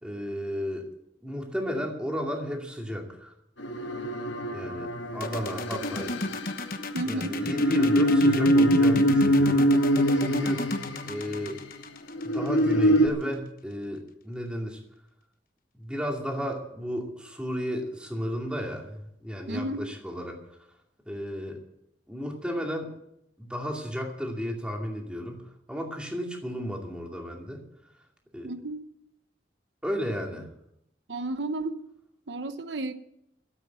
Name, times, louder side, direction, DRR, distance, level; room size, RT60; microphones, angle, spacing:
voice 1, 0.0-0.9 1.2-3.3 4.5-6.2 7.0-9.8 10.1-10.7 11.0-11.6 12.2-14.8 15.8-20.4 21.1-21.6 22.1-23.0 23.4-25.4 25.7-27.6 28.3-28.5 29.8-30.5, equal, 5° right, 0 dB, 2.4 m, -33 dB
horror sound, 3.6-11.5 12.1-13.1, equal, 85° left, 1.4 m, -24 dB
sound 1, 5.2-13.0, left 2 dB, 50° left, 1.0 m, -34 dB
voice 2, 6.9-7.4 19.5-19.8 28.4-28.8 31.1-31.7 32.3-32.9, right 2 dB, 80° right, 9 dB, 1.0 m, -32 dB
13.0 x 8.8 x 9.4 m, 0.78 s
head